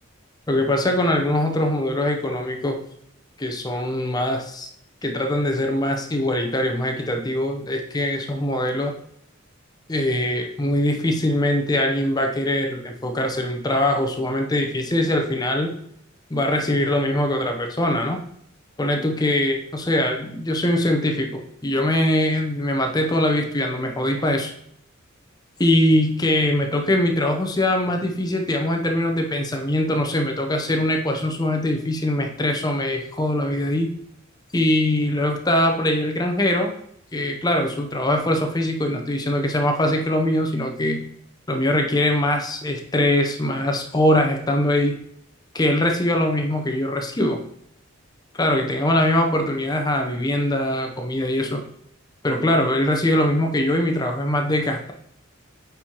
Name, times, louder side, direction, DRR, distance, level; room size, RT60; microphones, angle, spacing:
voice 1, 0.5-2.8 3.4-4.7 5.0-9.0 9.9-15.8 16.3-18.2 18.8-24.5 25.6-33.9 34.5-36.7 37.1-41.0 41.5-45.0 45.5-47.4 48.4-51.6 52.2-54.9, left 1 dB, 20° left, 4 dB, 0.7 m, -22 dB
8.3 x 4.6 x 2.9 m, 0.71 s
head